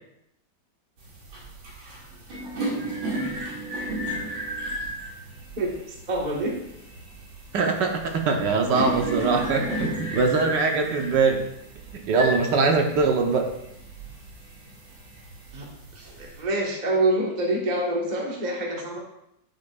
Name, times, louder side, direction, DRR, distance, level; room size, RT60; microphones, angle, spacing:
sound 1, 1.0-16.4, right 1 dB, 85° right, 3.0 m, -34 dB
voice 1, 5.6-6.5 7.6-7.8 15.5-15.7 16.2-19.0, right 1 dB, 25° right, -2 dB, 1.3 m, -26 dB
voice 2, 7.5-11.4 11.9-13.5, right 4 dB, 70° right, 4 dB, 1.5 m, -22 dB
9.9 x 9.7 x 2.4 m, 0.80 s
omnidirectional pair, 2.1 m